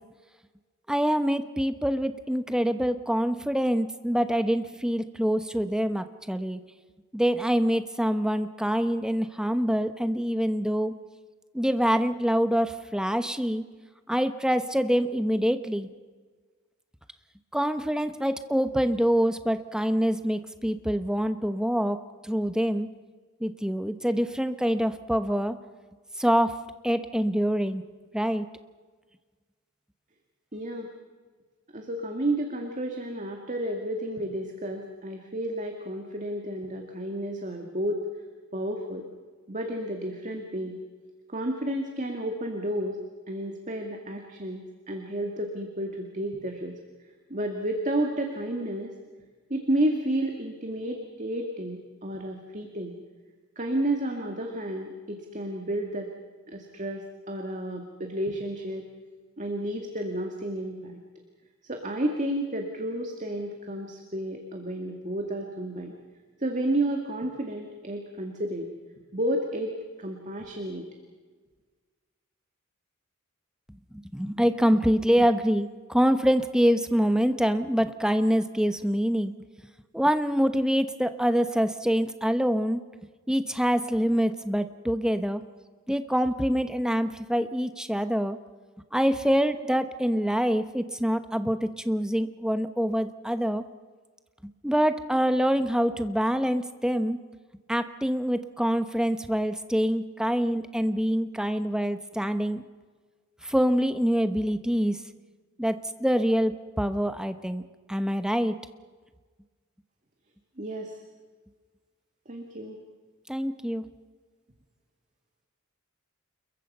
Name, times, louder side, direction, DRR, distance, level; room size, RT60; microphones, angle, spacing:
voice 1, 0.9-6.6 7.1-10.9 11.5-13.6 14.1-15.9 17.5-22.0 22.2-22.9 23.4-25.6 26.2-26.6 26.8-27.8 28.1-28.5 73.9-79.4 79.9-82.8 83.3-85.4 85.9-88.4 88.9-93.6 94.4-97.2 97.7-102.6 103.4-105.0 105.6-107.6 107.9-108.6 113.3-113.8, equal, 5° right, 9 dB, 1.0 m, -25 dB
voice 2, 30.5-30.9 31.7-38.0 38.5-39.0 39.5-40.7 41.3-43.0 43.3-46.7 47.3-48.9 49.5-53.0 53.6-56.1 56.5-58.9 59.4-61.0 61.6-65.9 66.4-68.7 69.1-70.9 110.6-111.0 112.3-112.8, right 1 dB, 35° right, 3 dB, 2.1 m, -31 dB
28.5 x 22.5 x 5.5 m, 1.4 s
head